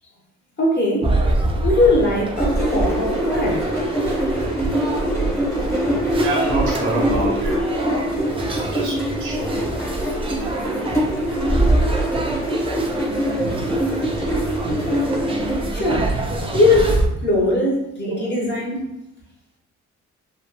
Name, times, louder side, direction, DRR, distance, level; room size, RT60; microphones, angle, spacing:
voice 1, 0.6-1.1 1.6-3.6 15.7-16.1 16.5-18.8, left 2 dB, 35° left, -3 dB, 1.0 m, -20 dB
sound 1, 1.0-17.1, right 2 dB, 20° right, 0.4 m, -25 dB
sound 2, 2.4-15.7, equal, 10° left, 0.9 m, -24 dB
voice 2, 6.2-8.1 8.5-9.7 18.1-18.3, right 1 dB, 80° right, -3 dB, 1.0 m, -27 dB
3.0 x 2.3 x 2.2 m, 0.86 s
cardioid pair, 90°, 30 cm